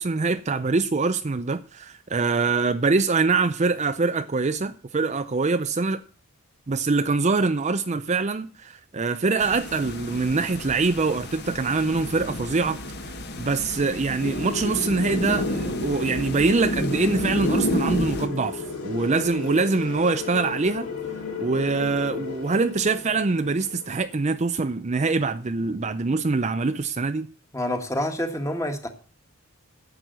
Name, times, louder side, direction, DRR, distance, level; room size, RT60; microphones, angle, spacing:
voice 1, 0.0-6.0 6.7-12.8 13.4-20.9 21.4-27.3, right 4 dB, 30° right, 0.5 m, -24 dB
sound 1, 9.4-18.3, equal, 45° left, 1.6 m, -31 dB
sound 2, 14.2-24.4, left 4 dB, 75° left, 3.6 m, -34 dB
voice 2, 27.5-28.9, left 1 dB, 15° left, 1.6 m, -27 dB
11.0 x 7.7 x 7.9 m
head